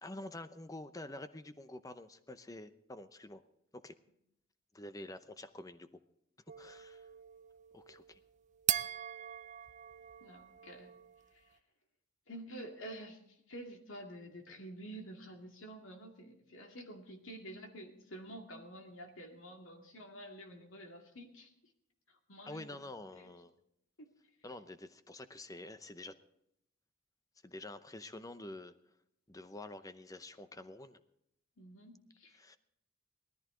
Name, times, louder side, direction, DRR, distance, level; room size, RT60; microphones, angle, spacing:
voice 1, 0.0-3.4 3.7-3.9 4.7-6.0 6.6-7.1 7.7-8.2 22.5-23.5 24.4-26.1 27.4-28.7 29.3-31.0 32.4-32.6, left 2 dB, 15° left, 11 dB, 0.7 m, -48 dB
sound 1, 6.5-11.3, right 12 dB, 35° right, 0.4 m, -41 dB
voice 2, 10.2-10.9 11.3-11.6 12.3-21.5 22.1-22.8 23.1-23.3 24.0-24.1 31.6-32.4, right 1 dB, 70° left, 3 dB, 2.4 m, -49 dB
19.0 x 14.0 x 3.8 m, 0.77 s
head